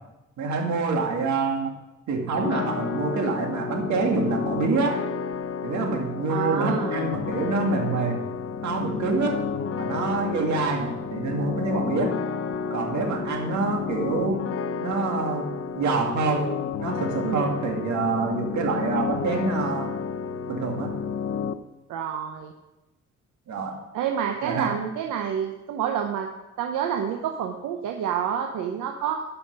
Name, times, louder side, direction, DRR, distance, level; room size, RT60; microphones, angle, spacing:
voice 1, 0.4-1.7 2.1-5.0 5.6-8.2 8.6-9.4 9.8-12.1 12.7-14.4 14.8-15.5 15.8-16.5 16.8-19.9 20.5-20.9 23.5-23.8 24.4-24.7, right 3 dB, 70° right, 2 dB, 2.1 m, -26 dB
sound 1, 2.3-21.5, left 6 dB, 50° left, 0.6 m, -31 dB
voice 2, 6.3-6.9 17.2-17.5 21.9-22.5 23.9-26.3 26.6-29.2, right 8 dB, 85° right, 3 dB, 0.9 m, -28 dB
11.5 x 5.9 x 5.4 m, 0.98 s
cardioid pair, 90°, 30 cm